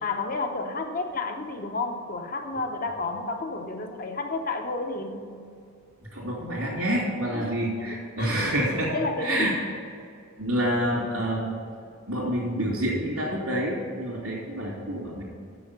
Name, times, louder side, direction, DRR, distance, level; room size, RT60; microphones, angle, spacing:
voice 1, 0.0-5.3 7.3-8.3 8.9-9.6, left 3 dB, 40° left, 4 dB, 0.8 m, -31 dB
voice 2, 6.1-9.5 10.4-11.6 12.1-15.2, right 1 dB, 80° right, -8 dB, 2.9 m, -28 dB
7.5 x 6.9 x 8.1 m, 2.4 s
head